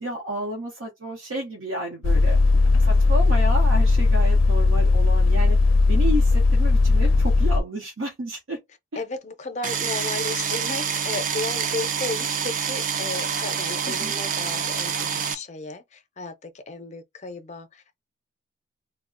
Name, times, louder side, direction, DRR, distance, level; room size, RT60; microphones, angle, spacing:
voice 1, 0.0-5.6 5.9-8.6 8.9-9.0 13.9-14.1, right 1 dB, 85° right, 0.8 m, -31 dB
sound 1, 2.0-7.6, left 3 dB, 90° left, 0.4 m, -18 dB
voice 2, 9.0-18.0, left 3 dB, 35° left, 0.5 m, -34 dB
sound 2, 9.6-15.3, right 7 dB, 40° right, 0.4 m, -27 dB
2.3 x 2.1 x 3.7 m
head